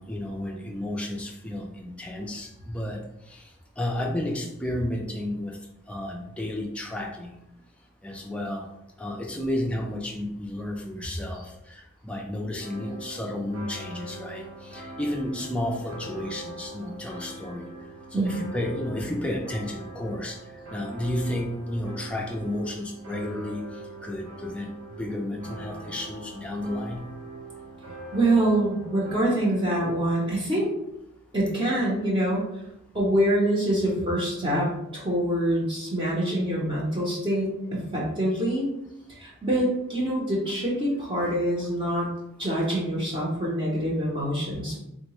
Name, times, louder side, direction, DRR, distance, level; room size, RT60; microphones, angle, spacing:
voice 1, 0.0-3.0 3.3-3.5 3.8-5.6 5.9-7.4 8.0-8.7 9.0-17.7 18.1-20.4 20.7-23.6 24.0-24.7 25.0-27.1, left 1 dB, 5° left, -1 dB, 0.4 m, -32 dB
sound 1, 12.6-29.1, right 1 dB, 80° right, 0.9 m, -42 dB
voice 2, 28.1-30.7 31.3-32.5 32.9-38.7 39.2-42.1 42.4-44.8, right 1 dB, 25° right, -5 dB, 0.7 m, -25 dB
3.6 x 2.1 x 3.0 m, 0.84 s
head